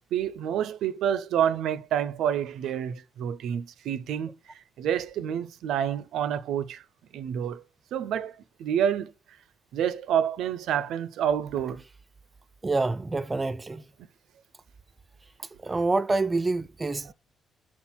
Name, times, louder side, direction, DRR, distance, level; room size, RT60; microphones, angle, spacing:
voice 1, 0.1-4.3 4.8-6.8 7.1-7.6 7.9-9.1 9.7-11.8 17.0-17.1, right 9 dB, 80° right, 0.5 m, -28 dB
voice 2, 12.6-13.8 15.6-17.1, right 3 dB, 25° right, 0.4 m, -27 dB
4.4 x 4.2 x 5.7 m
cardioid pair, 90°, 0 cm